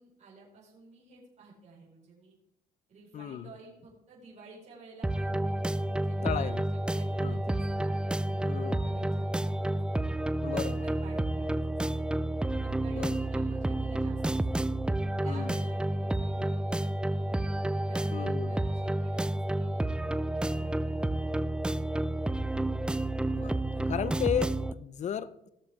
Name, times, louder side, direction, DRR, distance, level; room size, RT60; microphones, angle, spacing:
voice 1, 0.0-2.3 2.9-5.5 6.0-10.1 10.6-12.1 12.6-14.7 15.2-17.4 17.8-20.1 20.4-21.4 21.9-22.5, right 3 dB, 45° right, -4 dB, 4.6 m, -52 dB
voice 2, 3.1-3.5 6.2-6.6 7.2-7.3 8.4-8.9 10.4-10.8 12.9-13.1 15.3-15.5 18.1-18.6 23.2-25.5, left 9 dB, 45° left, 15 dB, 0.6 m, -34 dB
sound 1, 5.0-24.7, right 1 dB, 5° right, 0.3 m, -30 dB
17.0 x 7.1 x 3.5 m, 0.83 s
cardioid pair, 110°, 17 cm